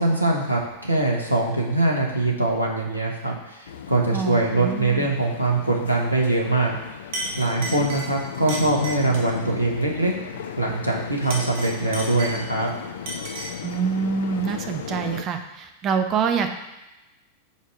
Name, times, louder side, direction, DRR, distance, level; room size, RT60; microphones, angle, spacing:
voice 1, 0.0-6.8 7.4-10.1 10.6-12.7, right 2 dB, 85° right, -1 dB, 1.1 m, -23 dB
sound 1, 3.7-15.2, left 8 dB, 60° left, 0.5 m, -36 dB
voice 2, 4.1-5.1 13.6-16.5, right 6 dB, 30° right, 6 dB, 0.8 m, -26 dB
Chink clink, 6.6-6.8 7.1-9.4 11.1-12.7 13.1-13.7, right 2 dB, 50° right, 1.5 m, -34 dB
5.7 x 4.6 x 6.0 m, 0.98 s
figure-of-eight pair, 90°, 0 cm